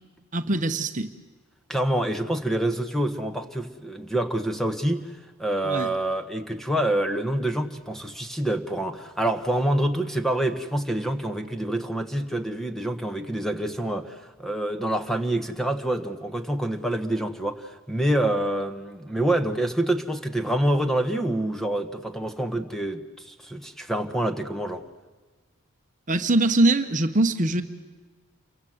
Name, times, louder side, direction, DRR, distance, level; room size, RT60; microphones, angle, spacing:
voice 1, 0.3-1.1 5.6-5.9 26.1-27.6, right 2 dB, 35° right, 8 dB, 1.0 m, -22 dB
voice 2, 1.7-5.1 5.4-24.9, right 1 dB, ahead, 7 dB, 1.3 m, -27 dB
28.5 x 24.0 x 8.0 m, 1.3 s
head